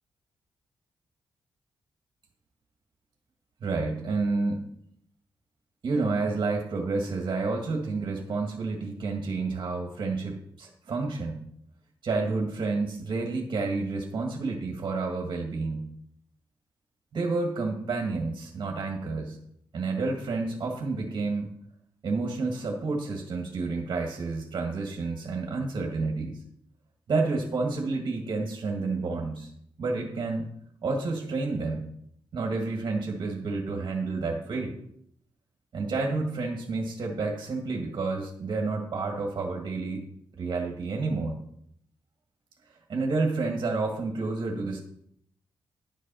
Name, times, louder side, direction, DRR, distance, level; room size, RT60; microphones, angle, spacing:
voice 1, 3.6-4.6 5.8-11.5 12.0-15.9 17.1-19.4 19.7-21.5 22.0-26.4 27.1-29.5 29.8-30.5 30.8-31.9 32.3-34.7 35.7-40.1 40.4-41.4 42.9-44.8, right 3 dB, 50° right, 2 dB, 1.7 m, -30 dB
11.0 x 6.6 x 5.5 m, 0.69 s
cardioid pair, 110°, 9 cm